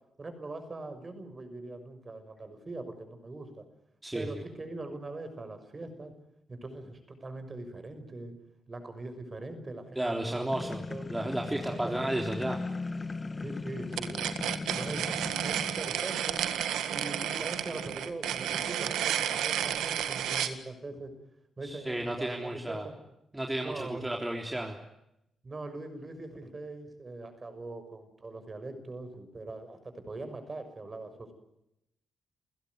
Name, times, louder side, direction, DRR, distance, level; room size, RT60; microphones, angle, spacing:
voice 1, 0.2-3.6 4.1-6.1 6.5-8.3 8.7-10.4 10.6-11.0 11.5-12.1 13.4-14.2 14.7-15.0 15.4-16.4 16.9-21.1 21.6-22.9 23.6-24.1 25.4-31.3, right 2 dB, 35° right, 9 dB, 6.2 m, -41 dB
voice 2, 4.0-4.3 10.0-10.8 11.1-12.6 21.6-22.9 23.3-24.8, right 1 dB, 15° right, 1 dB, 3.5 m, -33 dB
sound 1, 10.5-16.2, left 3 dB, 30° left, 1.3 m, -38 dB
sound 2, 13.9-20.6, right 10 dB, 90° right, 1.8 m, -31 dB
29.0 x 16.0 x 9.6 m, 0.83 s
cardioid pair, 70°, 0 cm